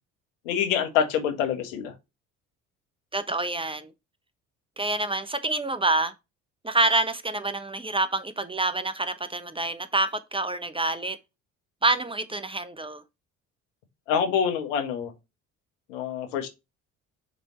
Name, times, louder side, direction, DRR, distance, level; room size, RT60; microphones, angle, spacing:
voice 1, 0.4-1.9 14.1-15.1 15.9-16.5, left 8 dB, 85° left, 1.5 m, -26 dB
voice 2, 3.1-3.9 4.8-6.1 6.6-11.2 11.8-13.0, right 2 dB, 15° right, 1.0 m, -27 dB
6.8 x 3.5 x 4.3 m
hypercardioid pair, 60°, 36 cm